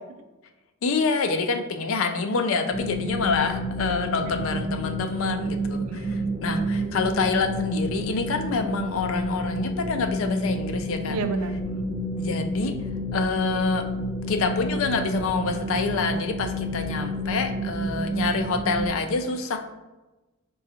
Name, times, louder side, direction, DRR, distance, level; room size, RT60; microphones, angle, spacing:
voice 1, 0.8-11.2 12.2-12.7 13.1-13.8 14.3-19.6, left 4 dB, 65° left, 6 dB, 0.4 m, -27 dB
sound 1, 2.7-18.9, right 1 dB, 5° right, 0.7 m, -30 dB
voice 2, 5.7-6.4 11.1-11.9, right 4 dB, 80° right, 8 dB, 0.4 m, -33 dB
4.8 x 2.3 x 2.8 m, 1.1 s
head